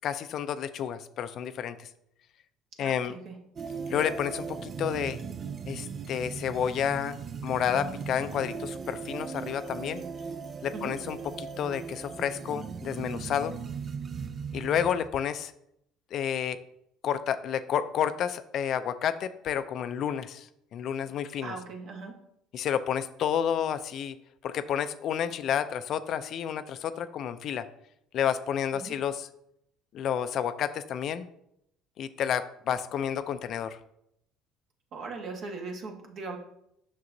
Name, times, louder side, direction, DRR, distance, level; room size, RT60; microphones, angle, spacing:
voice 1, 0.0-1.9 2.8-3.1 3.9-5.2 5.7-7.2 7.4-10.0 10.6-13.5 14.5-15.5 16.1-16.6 17.0-21.5 22.5-24.2 24.4-27.7 28.1-29.3 29.9-31.3 32.0-33.8, left 9 dB, 55° left, 12 dB, 0.4 m, -30 dB
voice 2, 2.8-3.3 10.7-11.0 21.4-22.2 28.7-28.9 34.9-36.4, right 4 dB, 55° right, 3 dB, 1.3 m, -39 dB
sound 1, 3.6-15.1, right 6 dB, 40° right, 0.3 m, -38 dB
6.5 x 6.0 x 2.6 m, 0.77 s
supercardioid pair, 90°, 0 cm